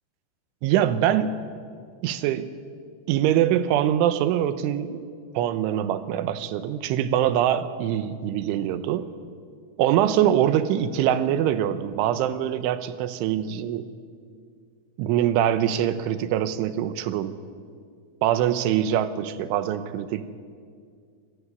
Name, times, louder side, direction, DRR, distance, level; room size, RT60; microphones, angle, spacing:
voice 1, 0.6-1.4 2.0-2.5 3.1-5.0 5.3-9.1 9.8-13.9 15.0-17.4 18.2-20.3, right 11 dB, 80° right, 12 dB, 3.3 m, -23 dB
26.0 x 15.0 x 9.7 m, 2.1 s
omnidirectional pair, 5.6 m